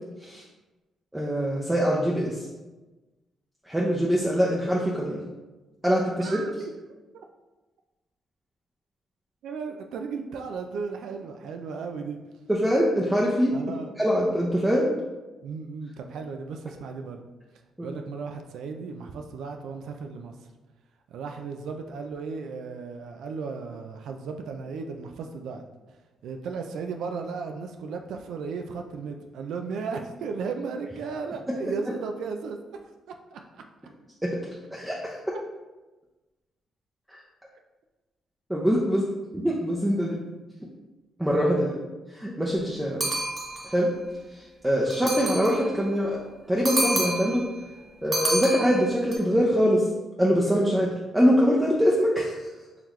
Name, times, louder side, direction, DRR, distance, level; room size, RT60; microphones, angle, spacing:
voice 1, 1.1-2.5 3.7-5.2 5.8-6.4 12.5-13.5 14.0-14.9 17.8-17.9 34.2-34.4 34.7-35.2 37.1-37.2 38.5-39.0 39.3-40.2 41.2-41.7 42.2-43.0 43.6-43.9 44.6-46.2 46.5-47.5 48.0-49.8 50.2-52.3, equal, 10° right, -4 dB, 0.6 m, -23 dB
voice 2, 6.2-6.7 7.1-7.2 9.4-12.2 13.5-13.9 15.4-17.2 17.8-20.3 21.1-25.6 26.2-32.6 33.1-33.6 41.5-41.8 44.9-45.1, right 5 dB, 80° right, 4 dB, 0.3 m, -35 dB
sound 1, 43.0-43.8 44.9-45.7 46.6-47.4 48.1-49.1, right 1 dB, 35° right, 1.0 m, -28 dB
3.9 x 2.8 x 3.1 m, 1.1 s
supercardioid pair, 70°, 0 cm